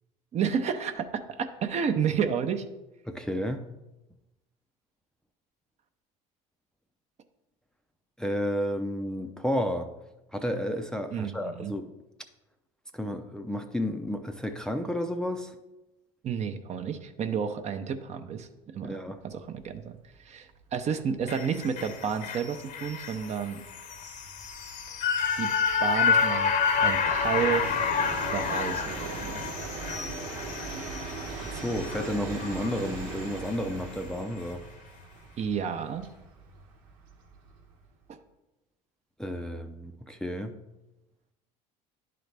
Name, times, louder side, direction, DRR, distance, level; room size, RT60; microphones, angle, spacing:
voice 1, 0.3-2.6 11.1-11.7 16.2-18.9 19.2-19.9 20.2-23.6 25.4-25.5 25.8-26.5 26.8-27.7 28.3-29.4 35.4-36.1 38.1-38.2, right 7 dB, 40° right, 8 dB, 0.7 m, -31 dB
voice 2, 3.1-3.6 8.2-9.9 10.3-11.9 12.9-15.6 18.8-19.2 31.5-34.6 39.2-40.6, equal, 5° left, 5 dB, 0.5 m, -31 dB
Train, 19.7-19.8 20.1-20.2 20.5-37.9, right 4 dB, 85° right, 1.1 m, -41 dB
sound 1, 21.3-33.6 34.0-34.1, left 6 dB, 50° left, 0.8 m, -29 dB
10.5 x 3.9 x 3.4 m, 0.98 s
supercardioid pair, 90°, 17 cm